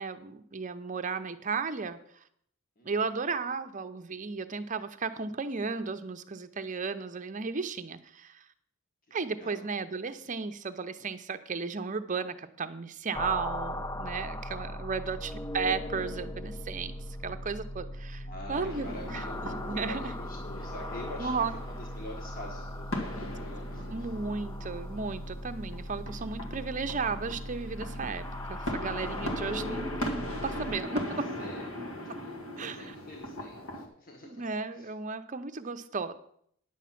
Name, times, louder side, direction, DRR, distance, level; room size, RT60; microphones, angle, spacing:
voice 1, 0.0-2.2 2.8-8.4 9.1-16.9 17.2-20.1 21.2-21.5 23.9-28.2 28.5-31.3 32.1-32.2 32.6-32.9 34.2-36.1, right 4 dB, 40° right, 9 dB, 0.7 m, -34 dB
voice 2, 9.2-9.7 18.3-24.1 31.0-31.7 32.1-34.5 34.7-34.9, left 1 dB, 45° left, 0 dB, 1.6 m, -46 dB
sound 1, 13.1-30.8, left 1 dB, 15° left, 0.4 m, -39 dB
sound 2, 18.5-33.9, left 1 dB, 85° left, 1.9 m, -40 dB
10.0 x 7.4 x 5.8 m, 0.68 s
head